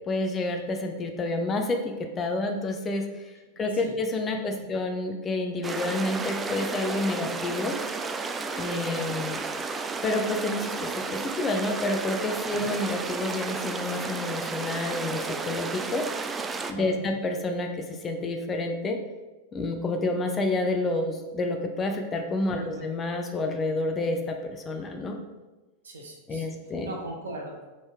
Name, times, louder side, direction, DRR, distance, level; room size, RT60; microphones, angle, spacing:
voice 1, 0.1-7.8 8.6-9.4 10.0-16.0 16.7-19.0 19.5-25.2 26.3-26.9, left 2 dB, 20° left, 4 dB, 0.6 m, -29 dB
sound 1, 5.6-16.7, right 4 dB, 15° right, 0.3 m, -33 dB
voice 2, 22.5-22.9 25.8-26.5 26.8-27.7, right 2 dB, 70° right, 1 dB, 0.8 m, -39 dB
3.9 x 3.7 x 3.6 m, 1.2 s
figure-of-eight pair, 90°, 0 cm